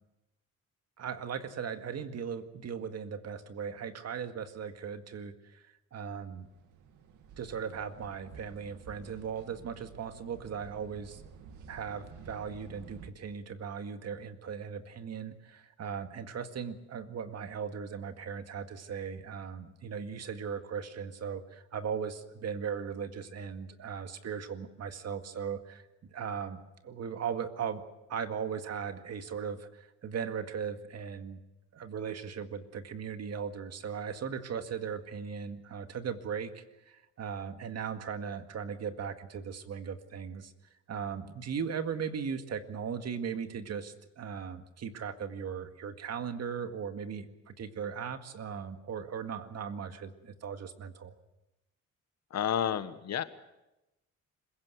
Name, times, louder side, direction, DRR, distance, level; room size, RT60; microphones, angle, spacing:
voice 1, 1.0-6.5 7.4-11.2 11.7-27.8 28.1-31.4 31.7-40.5 40.9-51.1, right 7 dB, 55° right, 8 dB, 1.9 m, -38 dB
sound 1, 6.2-13.1, right 6 dB, 80° right, 2.3 m, -51 dB
voice 2, 52.3-53.2, left 9 dB, 60° left, 12 dB, 1.4 m, -30 dB
26.5 x 16.5 x 7.9 m, 0.96 s
cardioid pair, 90°, 30 cm